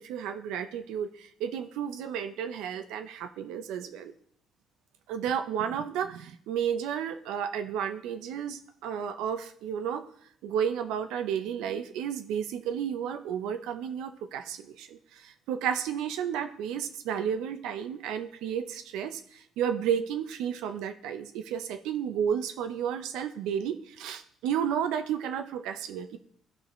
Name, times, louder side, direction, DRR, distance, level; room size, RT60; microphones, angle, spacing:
voice 1, 0.0-4.1 5.1-10.1 10.4-26.2, right 8 dB, 85° right, 8 dB, 0.6 m, -32 dB
13.5 x 4.9 x 3.1 m, 0.64 s
cardioid pair, 95°, 0 cm